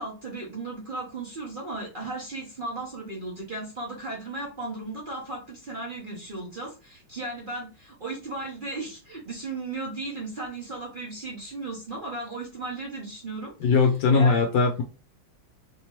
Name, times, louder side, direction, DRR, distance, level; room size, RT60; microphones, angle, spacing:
voice 1, 0.0-13.8 14.1-14.4, right 2 dB, 45° right, -4 dB, 0.6 m, -36 dB
voice 2, 13.6-14.8, left 4 dB, 70° left, 2 dB, 1.0 m, -20 dB
3.3 x 2.9 x 2.9 m, 0.33 s
omnidirectional pair, 2.2 m